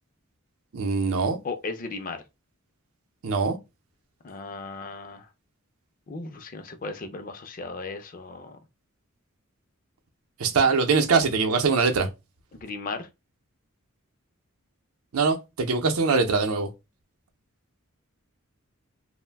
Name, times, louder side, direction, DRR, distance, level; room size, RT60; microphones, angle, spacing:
voice 1, 0.7-1.4 3.2-3.6 10.4-12.1 15.1-16.7, right 4 dB, 85° right, 0.6 m, -22 dB
voice 2, 1.4-2.2 4.2-5.3 6.1-8.6 12.5-13.1, left 3 dB, 40° left, 0.4 m, -36 dB
2.5 x 2.1 x 3.3 m
head